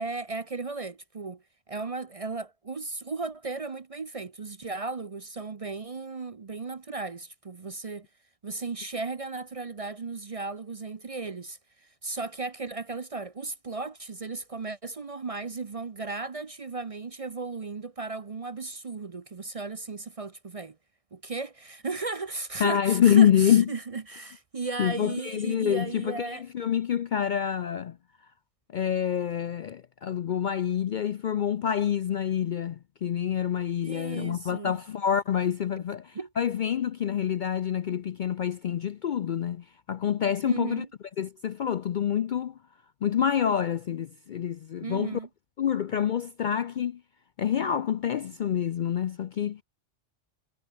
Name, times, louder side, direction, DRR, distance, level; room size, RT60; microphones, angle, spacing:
voice 1, 0.0-8.1 8.4-20.8 21.1-26.4 33.8-34.8 36.1-36.3 40.4-40.9 44.8-45.3, right 3 dB, 35° right, 0.7 m, -35 dB
voice 2, 22.6-23.7 24.8-28.0 28.7-40.9 41.2-42.5 43.0-45.2 45.6-47.0 47.4-49.6, left 9 dB, 55° left, 0.5 m, -27 dB
omnidirectional pair, 1.2 m